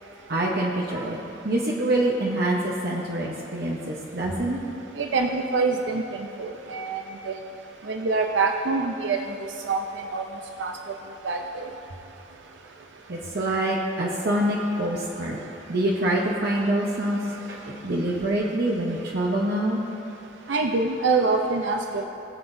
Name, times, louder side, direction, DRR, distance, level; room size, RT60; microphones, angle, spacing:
voice 1, 0.3-1.2 1.4-4.6 13.1-15.4 15.7-17.2 17.5-19.8, right 1 dB, 55° right, -3 dB, 0.9 m, -25 dB
voice 2, 5.0-6.0 6.4-7.4 7.9-9.2 9.7-9.8 10.1-10.2 10.6-10.7 11.2-11.4 20.5-22.0, right 4 dB, 80° right, 4 dB, 0.6 m, -25 dB
20.5 x 7.7 x 2.7 m, 2.8 s
head